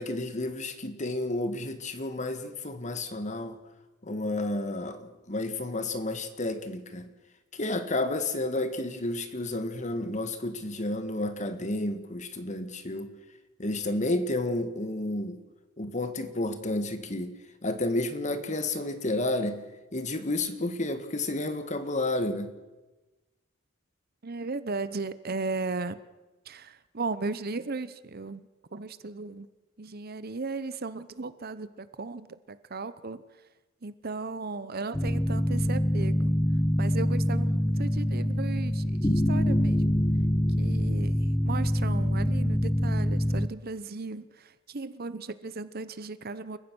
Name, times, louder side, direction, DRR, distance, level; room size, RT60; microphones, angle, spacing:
voice 1, 0.0-3.6 4.0-7.1 7.5-13.1 13.6-15.4 15.8-17.3 17.6-19.6 19.9-22.5, left 2 dB, 35° left, 10 dB, 1.7 m, -31 dB
voice 2, 24.2-26.0 26.4-29.5 29.8-33.2 33.8-36.4 36.8-40.0 40.6-46.6, right 3 dB, 45° right, 14 dB, 0.9 m, -36 dB
sound 1, 34.9-43.5, equal, 15° left, 0.8 m, -25 dB
29.0 x 15.0 x 6.3 m, 1.1 s
head